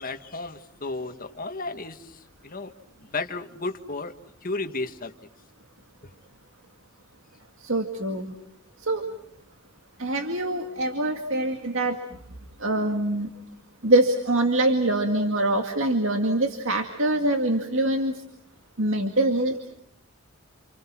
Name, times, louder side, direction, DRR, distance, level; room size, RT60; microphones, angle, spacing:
voice 1, 0.0-2.7 3.0-4.1 4.4-5.1, left 3 dB, 40° left, 6 dB, 1.7 m, -33 dB
voice 2, 7.6-8.3 8.8-9.0 10.0-12.0 12.6-13.3 13.8-18.1 18.8-19.6, right 1 dB, 60° right, 5 dB, 2.1 m, -24 dB
29.5 x 28.5 x 6.1 m, 0.68 s
head